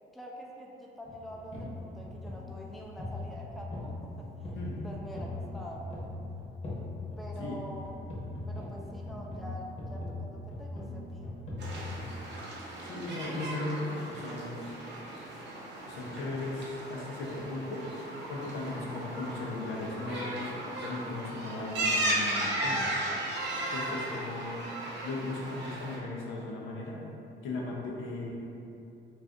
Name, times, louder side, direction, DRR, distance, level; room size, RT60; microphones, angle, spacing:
voice 1, 0.1-4.6 4.8-6.0 7.2-7.9 8.5-11.3, equal, ahead, -2 dB, 0.3 m, -45 dB
sound 1, 1.1-12.1, left 2 dB, 35° left, 0.9 m, -40 dB
sound 2, 11.6-26.0, right 1 dB, 60° right, 0.7 m, -36 dB
voice 2, 12.8-14.7 15.9-17.9 18.3-20.5 20.8-22.9 23.7-24.7 25.0-27.0 27.4-28.4, left 2 dB, 85° left, -3 dB, 0.6 m, -37 dB
2.5 x 2.5 x 3.4 m, 2.7 s
cardioid pair, 90°, 20 cm